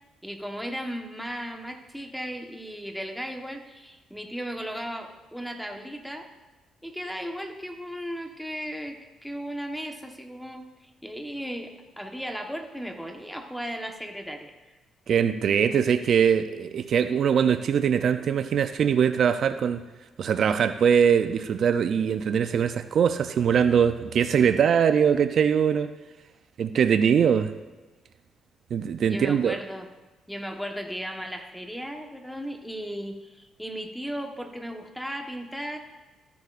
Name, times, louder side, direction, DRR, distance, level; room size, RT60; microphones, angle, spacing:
voice 1, 0.2-6.3 6.8-14.5 29.0-29.9 30.3-35.8, equal, ahead, 4 dB, 1.2 m, -36 dB
voice 2, 15.1-19.8 20.2-25.9 26.6-27.5 28.7-29.5, right 7 dB, 60° right, 10 dB, 0.4 m, -22 dB
14.0 x 10.5 x 2.5 m, 1.2 s
cardioid pair, 90°, 0 cm